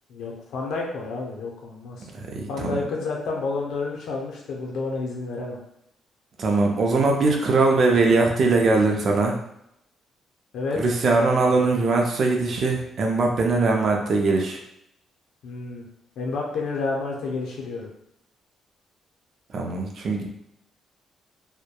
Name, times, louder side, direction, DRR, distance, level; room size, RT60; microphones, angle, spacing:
voice 1, 0.1-2.1 2.5-5.6 10.5-10.8 15.4-15.8 16.2-17.9, left 3 dB, 80° left, -1 dB, 0.6 m, -30 dB
voice 2, 2.1-2.8 6.4-9.4 10.8-14.6 19.5-20.3, right 3 dB, 55° right, 1 dB, 0.5 m, -21 dB
2.7 x 2.1 x 2.2 m, 0.76 s
cardioid pair, 90°, 0 cm